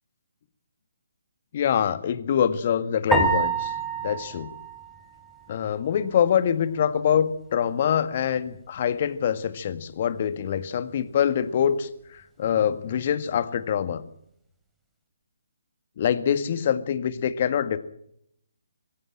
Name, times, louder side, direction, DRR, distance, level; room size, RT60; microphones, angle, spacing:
voice 1, 1.5-3.7 4.0-4.5 5.5-14.0 16.0-17.8, left 8 dB, 45° left, 13 dB, 1.8 m, -25 dB
sound 1, 3.1-5.6, right 3 dB, 5° right, 2.9 m, -27 dB
21.5 x 16.5 x 8.9 m, 0.74 s
figure-of-eight pair, 140°, 0 cm